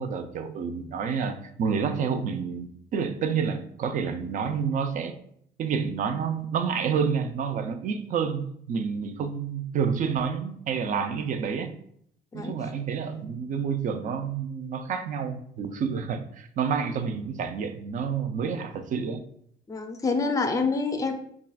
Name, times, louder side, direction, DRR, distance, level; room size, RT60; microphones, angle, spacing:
voice 1, 0.0-5.1 5.6-11.7 12.3-19.2, right 6 dB, 50° right, 9 dB, 0.4 m, -29 dB
voice 2, 19.7-21.1, left 4 dB, 20° left, 5 dB, 0.5 m, -26 dB
5.4 x 2.4 x 2.3 m, 0.68 s
cardioid pair, 110°, 17 cm